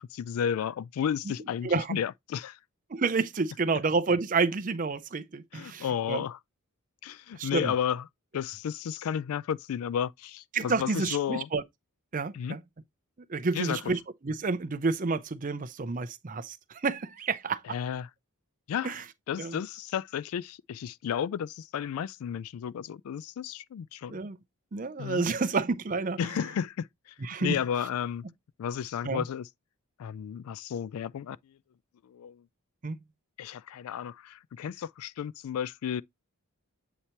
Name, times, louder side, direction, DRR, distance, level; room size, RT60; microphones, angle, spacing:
voice 1, 0.0-2.6 5.5-6.4 7.0-8.0 8.3-11.5 12.3-12.6 13.5-13.8 17.7-18.1 18.7-19.0 19.3-24.2 25.0-25.2 26.2-26.9 27.4-28.2 28.6-29.5 30.0-31.4 32.0-32.4 33.4-36.0, left 8 dB, 75° left, 0.3 m, -32 dB
voice 2, 1.6-2.0 2.9-6.2 7.3-7.7 10.5-11.6 12.1-12.6 13.3-17.6 18.8-19.0 19.4-19.6 24.1-24.4 24.7-26.2 27.2-27.6 29.0-29.2 32.8-33.0, right 4 dB, 35° right, 0.5 m, -29 dB
8.2 x 2.9 x 4.3 m
head